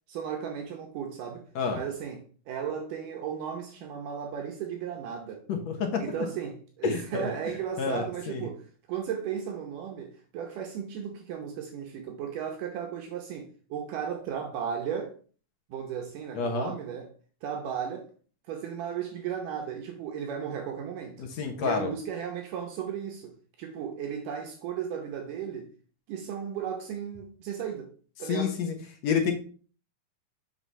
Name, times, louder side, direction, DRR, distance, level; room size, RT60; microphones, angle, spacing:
voice 1, 0.1-1.4 1.7-5.4 6.0-15.1 15.7-17.1 17.4-18.1 18.5-21.3 21.6-25.7 26.1-27.9 28.2-28.6, right 8 dB, 75° right, 2.4 m, -35 dB
voice 2, 5.5-6.0 6.8-7.3 7.8-8.4 16.3-16.7 21.2-21.9 28.3-28.7 29.0-29.3, left 5 dB, 60° left, 2.1 m, -28 dB
7.8 x 3.9 x 5.6 m
omnidirectional pair, 3.9 m